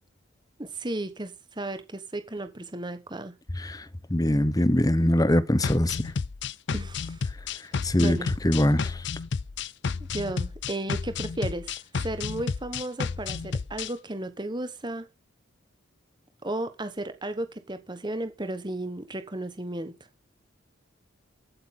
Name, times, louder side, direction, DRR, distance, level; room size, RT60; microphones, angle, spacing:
voice 1, 0.6-3.3 6.7-7.2 8.0-8.3 10.1-15.1 16.4-19.9, right 1 dB, 20° right, 1.2 m, -34 dB
voice 2, 4.1-6.0 7.8-8.2 8.4-9.0, left 1 dB, 20° left, 0.8 m, -22 dB
sound 1, 5.6-13.9, left 5 dB, 60° left, 0.5 m, -31 dB
16.0 x 8.7 x 3.8 m
head